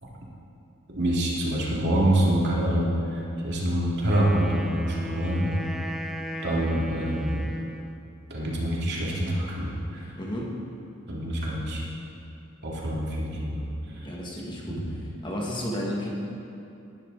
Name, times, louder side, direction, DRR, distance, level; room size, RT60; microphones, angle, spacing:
voice 1, 0.9-5.5 6.4-7.5 8.3-10.0 11.1-11.8 12.6-13.7 14.7-14.9, right 1 dB, 55° right, -4 dB, 2.7 m, -26 dB
Wind instrument woodwind instrument, 4.1-8.1, equal, ahead, 0.7 m, -35 dB
voice 2, 10.2-10.6 14.0-14.8 15.2-16.1, equal, 20° left, -3 dB, 2.0 m, -32 dB
18.5 x 12.0 x 4.1 m, 2.7 s
head